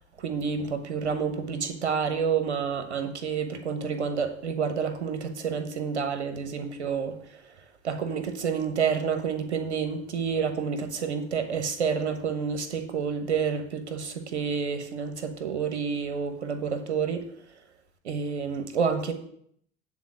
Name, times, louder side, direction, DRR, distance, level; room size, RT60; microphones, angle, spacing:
voice 1, 0.2-7.1 7.8-17.2 18.0-19.1, right 6 dB, 75° right, 8 dB, 1.2 m, -29 dB
9.4 x 4.1 x 7.4 m, 0.67 s
figure-of-eight pair, 70°, 34 cm